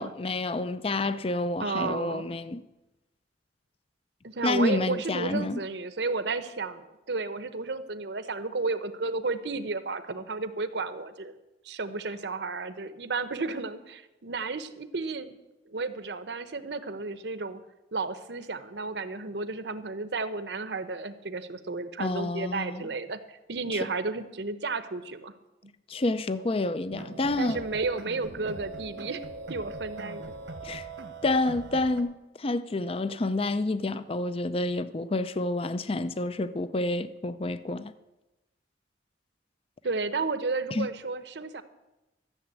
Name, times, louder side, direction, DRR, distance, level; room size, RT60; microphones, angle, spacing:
voice 1, 0.0-2.6 4.4-5.6 22.0-22.9 23.7-23.9 25.9-27.6 30.6-30.9 31.2-32.1 32.4-37.9 40.7-40.9, left 2 dB, 30° left, 0.5 m, -29 dB
voice 2, 1.6-2.2 4.2-11.3 11.6-15.3 15.7-17.6 17.9-25.3 27.4-30.3 39.8-41.6, right 3 dB, 70° right, 0.9 m, -32 dB
sound 1, 26.9-32.0, right 3 dB, 90° right, 1.3 m, -41 dB
13.5 x 7.0 x 8.4 m
head